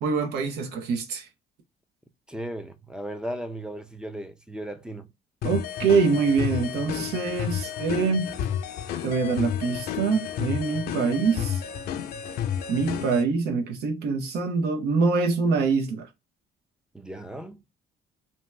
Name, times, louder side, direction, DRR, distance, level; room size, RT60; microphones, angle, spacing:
voice 1, 0.0-1.2 5.4-8.3 9.0-11.6 12.7-16.1, right 4 dB, 80° right, 0.8 m, -25 dB
voice 2, 2.3-5.1 16.9-17.6, right 1 dB, 5° right, 0.5 m, -36 dB
sound 1, 5.4-13.2, left 9 dB, 70° left, 0.6 m, -31 dB
2.7 x 2.2 x 3.2 m
cardioid pair, 110°, 17 cm